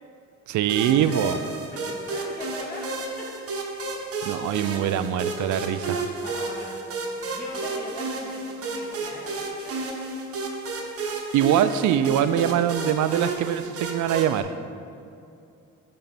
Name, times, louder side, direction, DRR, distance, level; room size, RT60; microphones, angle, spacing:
voice 1, 0.5-1.4 4.2-6.0 11.3-14.6, right 10 dB, 75° right, 12 dB, 0.5 m, -23 dB
sound 1, 0.7-14.4, right 3 dB, 50° right, 1.1 m, -32 dB
voice 2, 1.0-3.3 6.2-6.8 7.2-10.0 14.8-14.9, left 1 dB, 30° left, -3 dB, 1.8 m, -40 dB
10.5 x 4.4 x 4.1 m, 2.5 s
cardioid pair, 90°, 30 cm